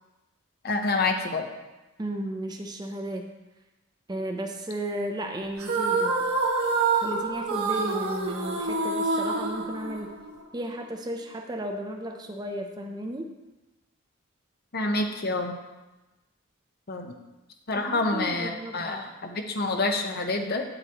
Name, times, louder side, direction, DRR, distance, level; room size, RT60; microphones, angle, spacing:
voice 1, 0.6-1.5 14.7-15.5 16.9-17.2 17.7-20.6, left 2 dB, 45° left, 4 dB, 0.8 m, -27 dB
voice 2, 2.0-3.3 4.1-6.3 6.6-10.1 10.5-13.3 17.7-19.1, right 1 dB, 20° right, 3 dB, 0.5 m, -34 dB
sound 1, 5.6-10.4, right 3 dB, 80° right, 1.4 m, -27 dB
8.7 x 7.8 x 2.9 m, 1.1 s
head